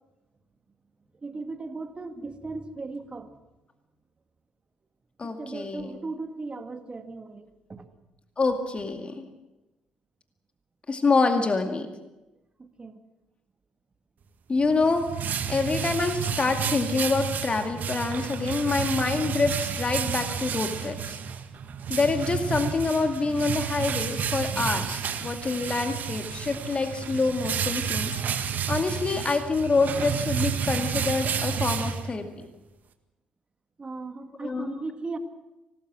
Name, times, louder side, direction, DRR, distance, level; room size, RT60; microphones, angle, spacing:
voice 1, 1.2-3.3 5.2-7.9 12.6-13.0 33.8-35.2, right 3 dB, 30° right, 8 dB, 2.0 m, -37 dB
voice 2, 5.2-5.9 8.4-9.3 10.9-11.9 14.5-15.1 15.5-21.2 21.9-28.1 28.7-32.5 34.4-34.8, left 3 dB, 30° left, 6 dB, 2.2 m, -26 dB
sound 1, 14.6-32.5, right 7 dB, 50° right, 1.8 m, -31 dB
25.5 x 19.0 x 6.2 m, 1.0 s
figure-of-eight pair, 45°, 4 cm